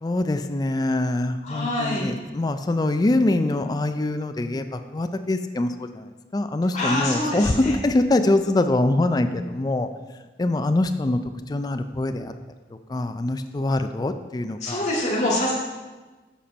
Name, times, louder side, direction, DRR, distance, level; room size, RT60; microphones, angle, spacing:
voice 1, 0.0-9.9 10.4-11.2 11.5-12.3 12.9-14.9, left 2 dB, 20° left, 9 dB, 0.3 m, -24 dB
voice 2, 1.4-2.1 6.7-7.7 14.6-15.5, left 1 dB, 40° left, -5 dB, 1.9 m, -25 dB
7.2 x 4.3 x 5.2 m, 1.2 s
head